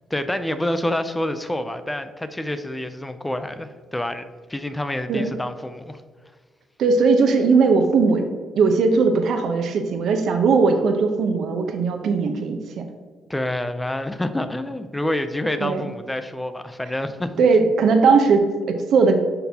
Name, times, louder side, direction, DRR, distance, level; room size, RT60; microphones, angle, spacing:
voice 1, 0.1-4.2 4.5-6.0 13.3-17.3, left 1 dB, 10° left, 10 dB, 0.4 m, -27 dB
voice 2, 6.8-8.2 8.5-12.8 15.6-15.9 17.4-19.2, right 4 dB, 70° right, 6 dB, 0.7 m, -19 dB
10.0 x 4.0 x 2.8 m, 1.5 s
cardioid pair, 90°, 0 cm